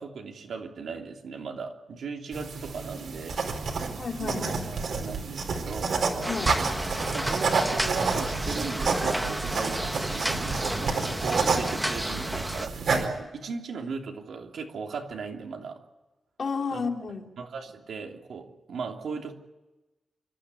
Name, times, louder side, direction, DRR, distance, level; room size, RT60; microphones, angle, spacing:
voice 1, 0.0-3.5 4.2-4.4 4.9-6.0 7.1-15.8 16.7-16.8 17.4-19.3, right 5 dB, 90° right, 2 dB, 3.0 m, -37 dB
sound 1, 2.3-13.0, right 4 dB, 70° right, 4.5 m, -29 dB
voice 2, 4.0-4.8 6.3-6.6 16.4-17.3, left 5 dB, 45° left, 0 dB, 3.0 m, -32 dB
sound 2, 6.2-12.7, right 1 dB, 5° right, 1.0 m, -32 dB
30.0 x 13.0 x 9.8 m, 1.1 s
wide cardioid pair, 180°, 0 cm